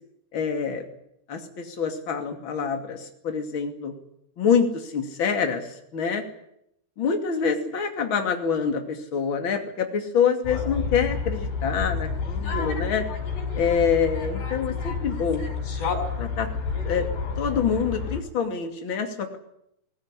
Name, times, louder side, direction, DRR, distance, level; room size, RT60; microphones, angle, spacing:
voice 1, 0.3-0.8 1.3-3.9 4.4-6.2 7.0-13.0 13.5-15.4 16.2-16.5 16.8-17.1 17.4-19.4, left 6 dB, 35° left, 4 dB, 2.8 m, -26 dB
sound 1, 10.4-18.2, left 5 dB, 85° left, 6.8 m, -29 dB
20.0 x 20.0 x 9.9 m, 0.77 s
omnidirectional pair, 4.6 m